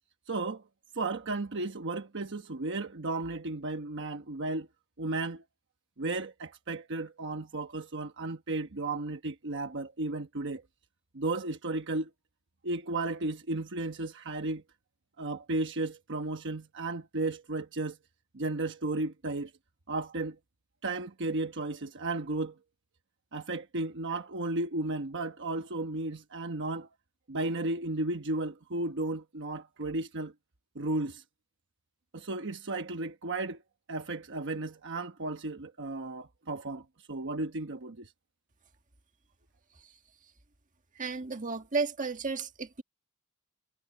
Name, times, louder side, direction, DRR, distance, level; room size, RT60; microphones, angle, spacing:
voice 1, 0.3-0.6 0.9-4.7 5.0-5.4 6.0-10.6 11.1-12.1 12.6-14.6 15.2-18.0 18.3-19.5 19.9-20.4 20.8-22.5 23.3-26.9 27.3-30.3 30.7-31.2 32.1-33.6 33.9-38.1, right 2 dB, 60° right, 1.1 m, -34 dB
voice 2, 41.0-42.8, right 4 dB, 40° right, 1.8 m, -33 dB
head